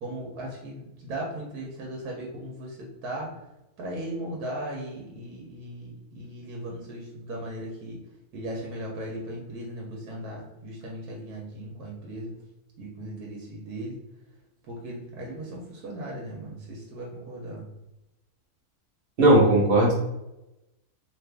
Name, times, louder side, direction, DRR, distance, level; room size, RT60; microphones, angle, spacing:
voice 1, 0.0-3.4 3.8-8.0 8.3-12.3 12.8-14.0 14.7-17.7, right 1 dB, 80° right, -2 dB, 1.3 m, -37 dB
voice 2, 19.2-19.9, right 1 dB, 45° right, -4 dB, 1.1 m, -17 dB
2.9 x 2.4 x 3.3 m, 0.93 s
omnidirectional pair, 1.6 m